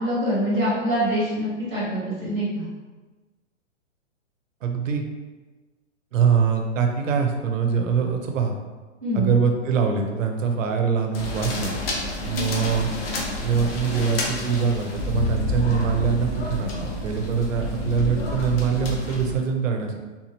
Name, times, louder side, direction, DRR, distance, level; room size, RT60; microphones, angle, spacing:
voice 1, 0.0-2.6 9.0-9.3 12.3-12.4, equal, 5° left, -17 dB, 0.3 m, -25 dB
voice 2, 4.6-5.0 6.1-8.5 9.1-11.8 12.2-12.9 13.4-20.0, right 6 dB, 80° right, 4 dB, 0.7 m, -23 dB
sound 1, 11.1-19.4, left 1 dB, 50° left, 0.8 m, -29 dB
3.6 x 2.9 x 2.9 m, 1.3 s
hypercardioid pair, 165°, 38 cm